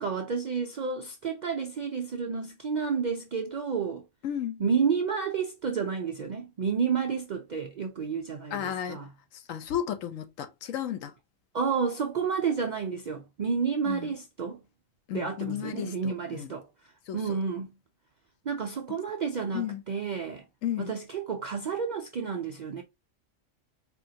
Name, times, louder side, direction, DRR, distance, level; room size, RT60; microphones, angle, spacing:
voice 1, 0.0-4.0 4.6-9.1 11.5-14.6 15.1-16.7 17.1-17.7 18.5-20.4 20.8-22.8, right 6 dB, 70° right, 0.4 m, -30 dB
voice 2, 4.2-4.6 8.5-9.0 9.3-11.1 13.8-14.1 15.1-16.5 17.1-17.4 18.9-19.0 19.5-19.8 20.6-20.9, left 10 dB, 85° left, 1.1 m, -34 dB
4.3 x 2.8 x 2.7 m
omnidirectional pair, 1.3 m